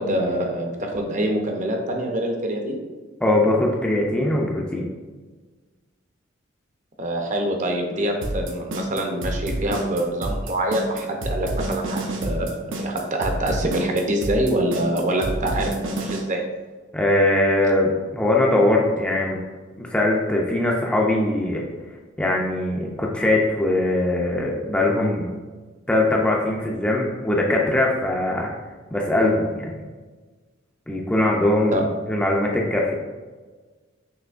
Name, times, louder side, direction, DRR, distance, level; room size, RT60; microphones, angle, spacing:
voice 1, 0.0-2.8 7.0-12.5 12.8-16.4 31.7-31.8, right 1 dB, 40° right, 2 dB, 0.6 m, -25 dB
voice 2, 3.2-4.9 16.9-19.4 19.8-21.6 22.2-25.3 25.9-28.5 28.9-29.7 30.9-32.9, left 1 dB, 5° left, -2 dB, 0.4 m, -21 dB
sound 1, 8.2-16.2, right 1 dB, 75° right, 0.7 m, -28 dB
5.7 x 3.0 x 2.4 m, 1.4 s
head